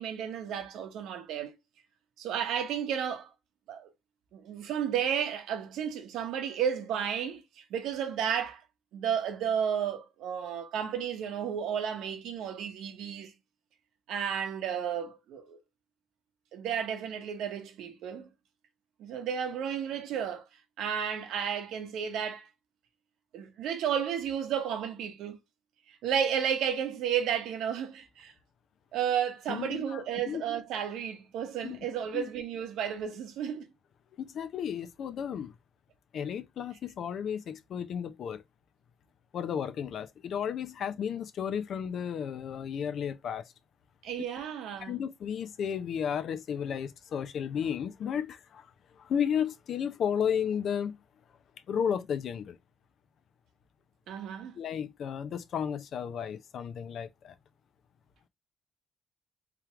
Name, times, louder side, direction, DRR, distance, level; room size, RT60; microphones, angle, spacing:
voice 1, 0.0-1.6 2.2-3.3 3.7-3.9 4.3-8.6 8.9-13.3 14.1-15.6 16.5-18.3 19.0-20.4 20.8-22.5 23.3-25.4 25.9-28.3 28.9-33.7 44.0-44.9 54.1-54.6, right 8 dB, 85° right, 1.0 m, -32 dB
voice 2, 29.5-30.4 31.6-31.8 32.1-32.3 34.2-35.5 36.1-38.4 39.3-43.5 44.8-48.7 49.0-51.0 51.7-52.6 54.6-57.3, left 8 dB, 65° left, 0.6 m, -33 dB
3.6 x 3.4 x 2.8 m
cardioid pair, 90°, 0 cm